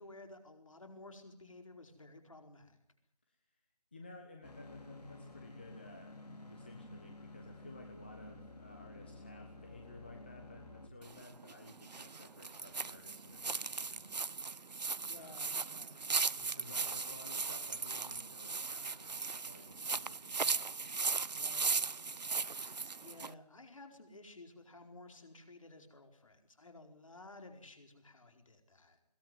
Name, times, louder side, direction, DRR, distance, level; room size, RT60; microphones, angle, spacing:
voice 1, 0.0-2.8 15.1-16.0 21.3-21.8 23.0-29.0, left 2 dB, 50° left, 5 dB, 4.6 m, -54 dB
voice 2, 3.9-6.2 6.4-14.1 15.1-15.5 16.3-20.7, left 2 dB, 15° left, 2 dB, 1.2 m, -55 dB
sound 1, 4.4-10.9, left 2 dB, 75° left, 4.7 m, -52 dB
sound 2, 11.0-23.3, right 4 dB, 85° right, 0.8 m, -37 dB
21.5 x 18.0 x 9.3 m, 0.71 s
figure-of-eight pair, 180°, 21 cm